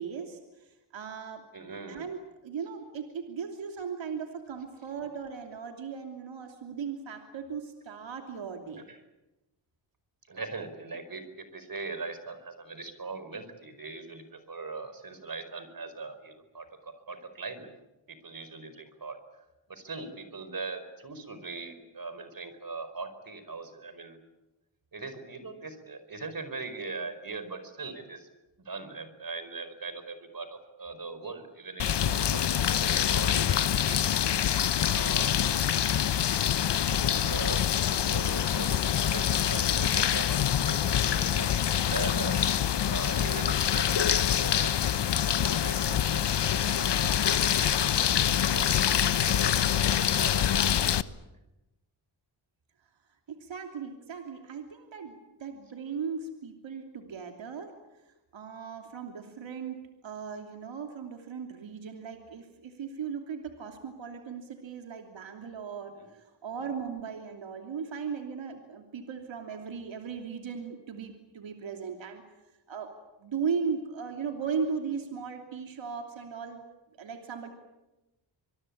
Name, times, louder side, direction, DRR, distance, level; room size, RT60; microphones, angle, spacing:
voice 1, 0.0-1.4 1.9-8.8 53.3-57.7 58.1-72.2 72.7-72.9 73.2-76.6 77.0-77.5, right 6 dB, 75° right, 4 dB, 3.1 m, -37 dB
voice 2, 1.5-2.0 8.9-9.0 10.3-17.7 18.1-19.2 19.7-24.2 24.9-28.3 28.6-34.2 34.8-35.4 36.9-47.8 48.3-50.9 65.9-66.1 66.6-66.7, right 4 dB, 45° right, 10 dB, 4.9 m, -41 dB
sound 1, 31.8-51.0, left 9 dB, 60° left, 1.1 m, -25 dB
25.5 x 22.5 x 8.7 m, 1.0 s
cardioid pair, 55°, 46 cm